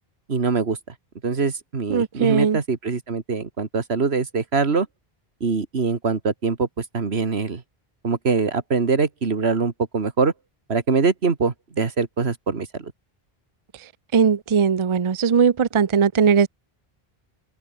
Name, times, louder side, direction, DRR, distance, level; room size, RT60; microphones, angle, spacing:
voice 1, 0.3-0.8 1.2-4.9 5.4-7.6 8.0-10.3 10.7-12.9, right 4 dB, 85° right, 2.1 m, -23 dB
voice 2, 1.9-2.6 14.1-16.5, right 6 dB, 35° right, 0.6 m, -19 dB
open air
omnidirectional pair, 1.0 m